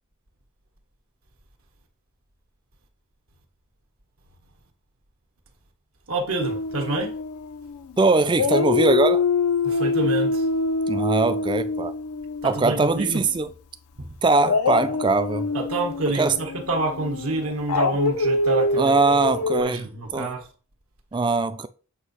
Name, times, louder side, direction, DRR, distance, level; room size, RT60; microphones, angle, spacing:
voice 1, 6.1-7.2 9.6-10.5 12.4-13.2 14.0-14.1 15.5-20.5, right 2 dB, 75° right, 1.4 m, -28 dB
Dog, 6.4-7.9 8.3-13.4 14.4-19.6, left 3 dB, 85° left, 0.5 m, -25 dB
voice 2, 8.0-9.2 10.9-11.9 12.4-13.5 14.2-15.5 16.2-16.4 18.8-19.8 20.1-20.3 21.1-21.7, right 3 dB, 20° right, 0.4 m, -21 dB
8.0 x 2.8 x 5.5 m
head